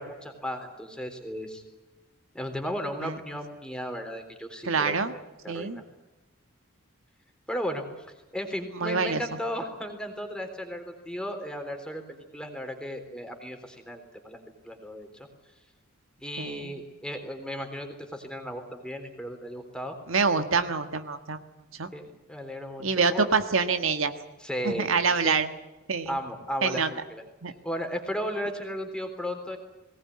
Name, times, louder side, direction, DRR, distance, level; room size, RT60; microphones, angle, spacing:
voice 1, 0.0-1.6 2.3-5.8 7.5-7.8 8.3-14.4 14.6-15.3 16.2-20.0 21.9-23.3 24.4-25.4 26.1-27.2 27.6-29.6, equal, 5° left, 5 dB, 3.7 m, -35 dB
voice 2, 4.6-5.1 5.5-5.8 8.8-9.2 16.4-16.8 20.1-21.4 21.8-21.9 22.8-24.1 24.6-25.5 25.9-26.2 26.6-26.9 27.4-27.5, right 5 dB, 70° right, 8 dB, 1.6 m, -26 dB
21.5 x 19.0 x 9.7 m, 1.1 s
head